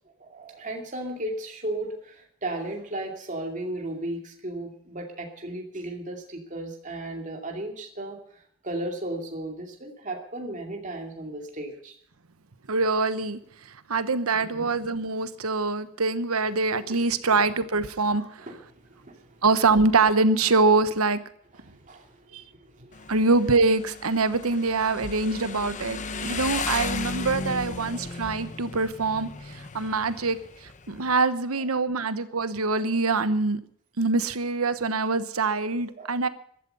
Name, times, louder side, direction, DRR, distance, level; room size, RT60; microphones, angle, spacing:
voice 1, 0.2-11.9 14.5-14.7 18.5-19.4 21.6-23.1 27.9-28.0 32.7-32.8 36.0-36.1, right 1 dB, 35° right, 2 dB, 2.5 m, -35 dB
voice 2, 12.7-18.5 19.4-21.2 22.3-22.4 23.1-33.6 34.0-36.3, right 3 dB, 85° right, 13 dB, 1.1 m, -24 dB
Motorcycle, 22.9-31.2, left 4 dB, 35° left, 0.9 m, -35 dB
15.0 x 12.5 x 5.5 m, 0.65 s
head